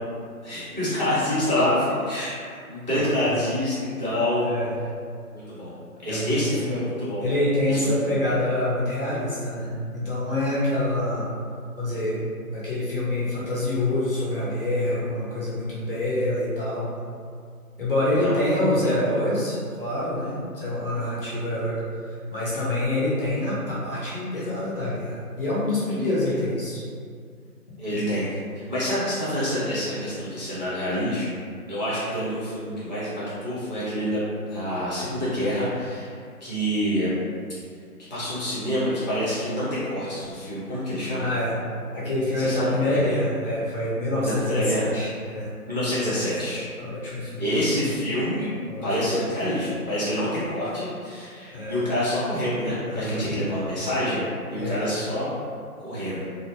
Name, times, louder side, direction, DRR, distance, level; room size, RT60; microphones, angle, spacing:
voice 1, 0.4-4.4 5.3-7.3 7.7-8.2 18.1-18.4 27.8-31.3 31.7-34.2 34.5-37.1 38.1-41.3 42.4-42.7 43.0-43.1 44.2-44.9 45.7-46.6 47.4-48.5 48.8-55.3 55.8-56.2, equal, 30° right, -11 dB, 0.5 m, -27 dB
voice 2, 6.1-6.6 7.2-11.3 11.8-12.2 12.5-16.9 17.8-21.8 22.1-26.8 41.2-41.6 41.9-45.5 45.9-46.0 46.4-46.5 46.8-47.7 48.7-48.9 51.5-51.9 52.8-53.2 54.6-54.8, left 1 dB, 35° left, -9 dB, 0.7 m, -26 dB
2.5 x 2.1 x 2.8 m, 2.2 s
figure-of-eight pair, 160°, 46 cm